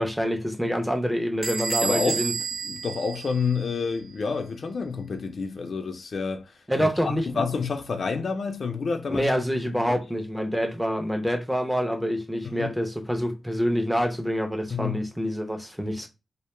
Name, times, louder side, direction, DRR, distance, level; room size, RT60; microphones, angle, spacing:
voice 1, 0.0-2.3 6.7-7.5 9.1-16.1, equal, 5° right, 0.4 m, -26 dB
Bell / Door, 1.4-3.9, right 5 dB, 40° right, 0.8 m, -31 dB
voice 2, 1.8-2.3 2.6-9.3 9.9-10.0 12.4-12.7 14.7-15.0, left 5 dB, 60° left, 0.3 m, -29 dB
2.1 x 2.0 x 3.0 m
wide cardioid pair, 95°, 0 cm